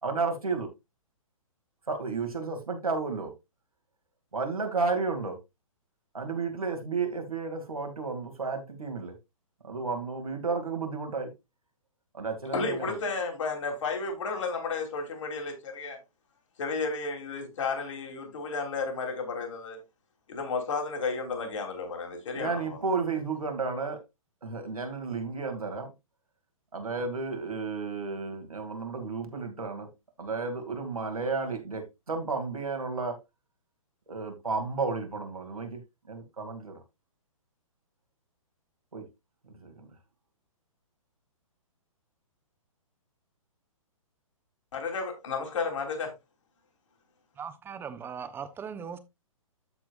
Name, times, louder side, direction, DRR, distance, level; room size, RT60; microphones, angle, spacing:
voice 1, 0.0-0.7 1.9-3.3 4.3-5.4 6.1-9.1 9.6-11.3 12.1-13.0 22.4-24.0 24.4-25.9 26.7-29.9 30.2-33.2 34.1-35.8 36.1-36.8 38.9-39.0 39.5-39.9, right 4 dB, 90° right, 2.6 m, -32 dB
voice 2, 12.5-16.0 16.6-19.8 20.3-22.8 44.7-46.1, left 4 dB, 60° left, 3.2 m, -32 dB
voice 3, 47.4-49.0, right 7 dB, 10° right, 0.8 m, -39 dB
14.0 x 4.6 x 2.5 m
figure-of-eight pair, 130°, 18 cm